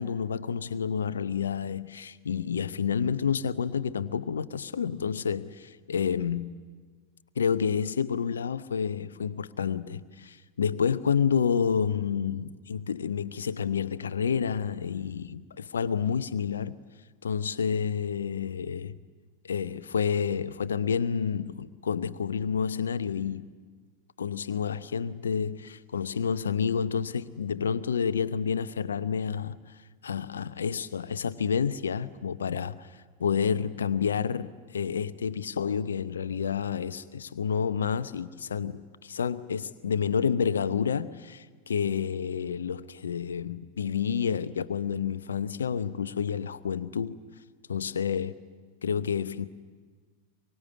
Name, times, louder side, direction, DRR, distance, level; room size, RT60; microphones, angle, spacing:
voice 1, 0.0-6.5 7.4-16.8 17.2-19.0 19.4-23.5 24.2-29.6 30.0-32.9 33.2-47.2 47.7-48.4 48.8-49.5, left 7 dB, 70° left, 0.8 m, -29 dB
24.5 x 23.0 x 9.6 m
figure-of-eight pair, 90°, 0 cm